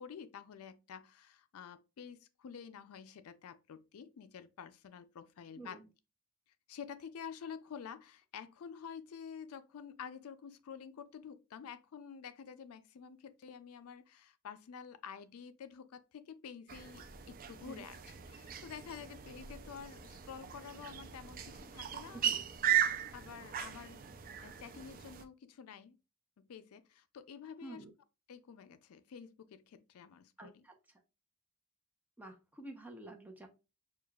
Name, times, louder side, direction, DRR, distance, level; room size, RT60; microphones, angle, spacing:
voice 1, 0.0-5.8 6.7-18.0 18.3-22.2 23.1-24.1 24.4-26.0 26.4-27.8 28.3-30.7, left 7 dB, 75° left, 0.4 m, -49 dB
voice 2, 5.6-5.9 17.6-17.9 22.1-22.4 27.6-27.9 30.4-31.0 32.2-33.5, right 2 dB, 10° right, 0.7 m, -50 dB
sound 1, 16.7-25.2, right 9 dB, 40° right, 0.4 m, -38 dB
6.5 x 2.3 x 2.3 m
head